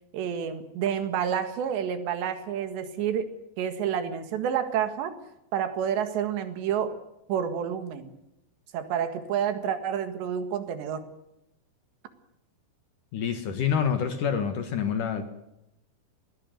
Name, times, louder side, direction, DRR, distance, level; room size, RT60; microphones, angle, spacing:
voice 1, 0.1-3.3 3.6-5.2 5.5-7.0 7.3-8.1 8.7-11.0, right 8 dB, 80° right, 9 dB, 4.0 m, -29 dB
voice 2, 13.1-15.2, left 7 dB, 60° left, 8 dB, 2.6 m, -27 dB
20.5 x 16.5 x 9.2 m, 0.86 s
omnidirectional pair, 5.0 m